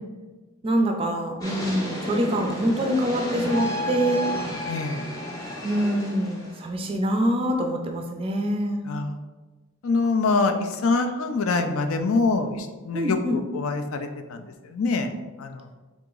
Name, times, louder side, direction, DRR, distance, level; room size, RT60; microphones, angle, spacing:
voice 1, 0.6-4.2 5.6-8.8 12.9-13.4, equal, 25° right, 3 dB, 0.4 m, -25 dB
sound 1, 1.4-6.9, left 1 dB, 15° left, 0.6 m, -32 dB
voice 2, 4.7-5.1 8.9-9.2 9.8-15.1 15.4-15.7, left 3 dB, 70° left, 6 dB, 0.4 m, -25 dB
3.6 x 2.9 x 3.7 m, 1.2 s
head